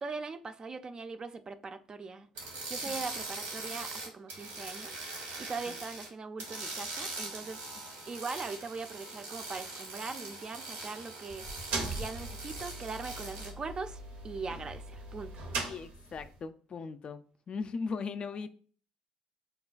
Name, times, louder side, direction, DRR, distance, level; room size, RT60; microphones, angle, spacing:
voice 1, 0.0-2.3 2.7-11.5 11.8-15.3, right 4 dB, 35° right, 0.4 m, -41 dB
sound 1, 2.3-6.1 6.4-13.5, right 3 dB, 90° right, 1.3 m, -41 dB
sound 2, 11.3-16.4, right 2 dB, 70° right, 0.7 m, -40 dB
voice 2, 15.7-18.5, left 4 dB, 45° left, 0.4 m, -38 dB
5.1 x 2.2 x 2.4 m
hypercardioid pair, 60°, 2 cm